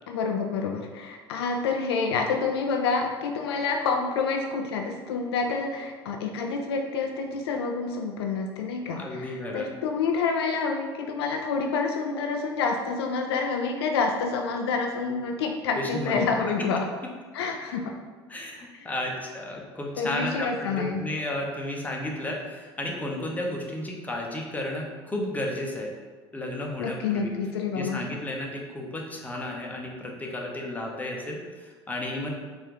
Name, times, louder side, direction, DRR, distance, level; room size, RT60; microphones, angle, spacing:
voice 1, 0.1-16.9 17.3-18.0 18.7-18.9 20.0-21.0 26.8-28.1, left 4 dB, 70° left, 3 dB, 0.4 m, -28 dB
voice 2, 9.0-9.7 15.8-16.4 18.3-25.9 26.3-27.3 27.7-32.3, left 1 dB, 10° left, -1 dB, 0.8 m, -33 dB
4.3 x 2.6 x 3.9 m, 1.4 s
figure-of-eight pair, 65°, 14 cm